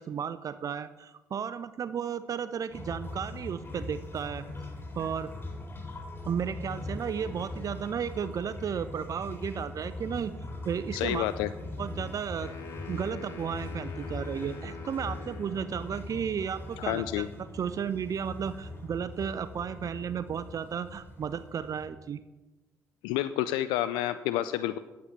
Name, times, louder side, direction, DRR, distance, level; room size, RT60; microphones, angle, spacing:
voice 1, 0.0-4.5 5.0-5.3 6.3-10.3 10.7-11.3 11.8-12.5 12.9-17.2 17.5-22.2, right 7 dB, 50° right, 13 dB, 0.5 m, -34 dB
sound 1, 2.7-21.9, left 2 dB, 30° left, 3.1 m, -41 dB
voice 2, 10.9-11.5 16.8-17.3 23.0-24.8, left 13 dB, 85° left, 13 dB, 0.4 m, -29 dB
sound 2, 12.4-15.7, left 5 dB, 50° left, 2.3 m, -45 dB
9.3 x 8.6 x 5.9 m, 1.1 s
hypercardioid pair, 55°, 7 cm